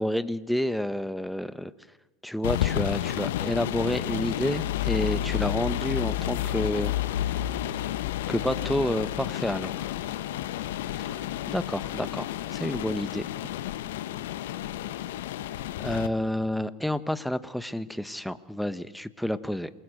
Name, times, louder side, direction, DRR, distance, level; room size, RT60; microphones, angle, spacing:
voice 1, 0.0-1.7 2.2-6.9 7.3-7.4 8.3-9.9 10.9-11.1 11.5-13.3 15.8-19.7, left 1 dB, ahead, 13 dB, 1.0 m, -29 dB
sound 1, 2.4-16.1, left 12 dB, 75° left, 1.1 m, -31 dB
28.0 x 20.5 x 6.5 m, 1.0 s
hypercardioid pair, 90°, 0 cm